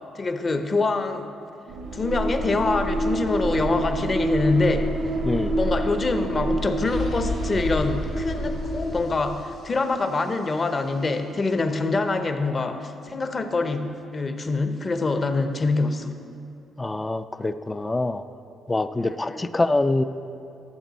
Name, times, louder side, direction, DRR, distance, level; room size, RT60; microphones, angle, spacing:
voice 1, 0.1-1.3 1.9-4.9 5.5-16.1 19.0-19.5, left 3 dB, 35° left, 8 dB, 0.7 m, -25 dB
sound 1, 1.7-9.5, right 1 dB, 90° right, 1.3 m, -27 dB
voice 2, 5.2-5.5 16.8-18.2 18.7-20.0, left 2 dB, 20° left, 12 dB, 0.3 m, -25 dB
sound 2, 6.9-10.6, left 4 dB, 65° left, 1.5 m, -33 dB
13.5 x 6.7 x 4.0 m, 2.6 s
cardioid pair, 90°, 0 cm